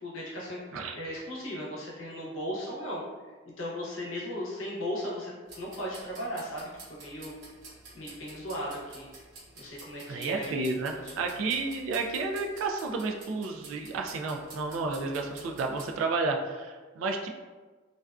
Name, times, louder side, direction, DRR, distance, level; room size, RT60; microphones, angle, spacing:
voice 1, 0.0-0.6 0.9-7.4 7.9-9.1 9.6-11.4, equal, 85° left, -5 dB, 0.7 m, -37 dB
sound 1, 5.5-16.0, right 3 dB, 70° right, 0.8 m, -50 dB
voice 2, 10.1-17.3, right 3 dB, 85° right, 3 dB, 0.3 m, -31 dB
2.4 x 2.3 x 2.3 m, 1.4 s
head